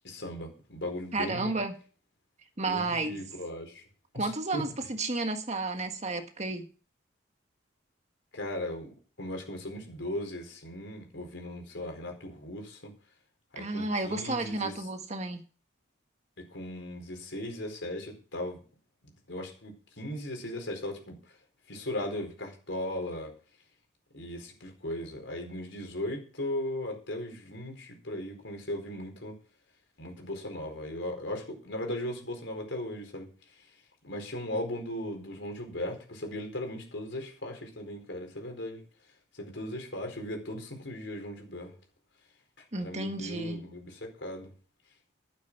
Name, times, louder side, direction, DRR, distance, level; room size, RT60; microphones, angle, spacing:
voice 1, 0.0-1.6 2.6-3.8 4.1-4.7 8.3-12.9 13.5-14.7 16.4-18.6 19.3-21.2 21.7-23.3 24.1-29.4 30.0-33.3 34.0-38.8 39.3-41.7 42.8-44.5, left 1 dB, 70° left, 4.4 m, -37 dB
voice 2, 1.1-1.7 2.6-3.2 4.2-6.7 13.5-15.4 42.7-43.6, right 2 dB, 35° right, 1.6 m, -32 dB
12.5 x 8.6 x 6.0 m
head